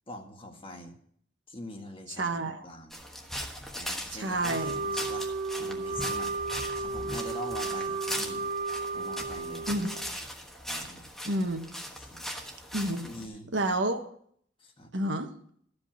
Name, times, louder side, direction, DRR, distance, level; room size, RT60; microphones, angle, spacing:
voice 1, 0.1-1.0 1.5-3.0 3.8-5.2 5.6-6.3 6.7-8.5 8.9-9.7 10.6-11.0 12.0-12.3 13.0-13.5 14.6-14.9, left 1 dB, 30° left, 3 dB, 1.6 m, -43 dB
voice 2, 2.2-2.7 4.1-4.7 9.7-9.9 11.2-11.6 12.7-13.0 13.5-14.1 14.9-15.3, right 1 dB, 80° right, 5 dB, 1.4 m, -29 dB
sound 1, 2.9-13.3, equal, ahead, 1.4 m, -39 dB
Wind instrument woodwind instrument, 4.5-10.1, right 4 dB, 50° right, 0.6 m, -34 dB
13.5 x 5.2 x 7.4 m, 0.62 s
head